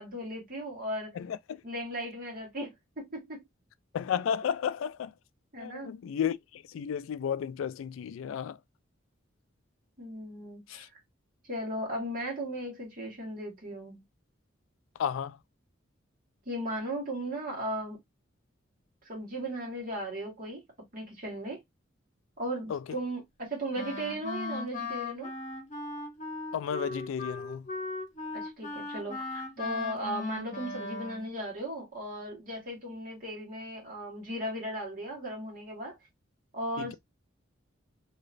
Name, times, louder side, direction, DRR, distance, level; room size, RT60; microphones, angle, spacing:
voice 1, 0.0-1.1 1.6-3.4 5.5-5.9 10.0-11.0 11.5-14.0 16.4-18.0 19.0-20.6 20.9-21.6 22.4-25.3 28.3-36.0 36.5-37.0, right 1 dB, 45° right, 1.8 m, -36 dB
voice 2, 1.2-1.6 3.9-5.1 5.6-8.6 10.7-10.9 15.0-15.4 22.7-22.8 26.5-27.7 36.8-37.0, left 8 dB, 90° left, 0.3 m, -33 dB
Wind instrument woodwind instrument, 23.8-31.3, left 3 dB, 40° left, 0.9 m, -38 dB
3.0 x 2.9 x 2.5 m
head